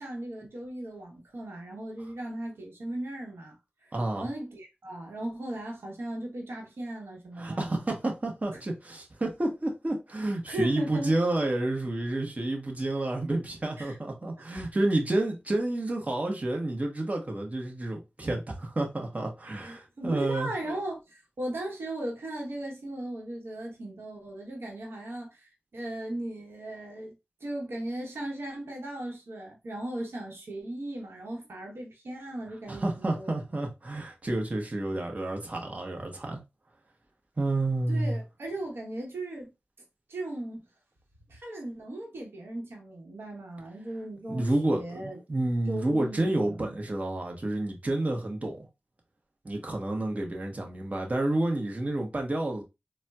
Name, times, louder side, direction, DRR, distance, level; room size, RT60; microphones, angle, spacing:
voice 1, 0.0-3.6 3.8-7.8 8.5-8.6 10.5-11.2 13.8-14.0 14.4-14.5 19.6-27.1 27.4-33.4 37.9-39.5 40.1-40.6 41.3-45.2 45.7-46.8, right 1 dB, 90° right, 0.9 m, -37 dB
voice 2, 3.9-4.3 7.4-20.5 32.7-36.4 37.4-38.2 44.3-48.7 49.4-52.6, right 2 dB, 40° right, 0.9 m, -29 dB
4.0 x 2.1 x 2.3 m
cardioid pair, 50°, 4 cm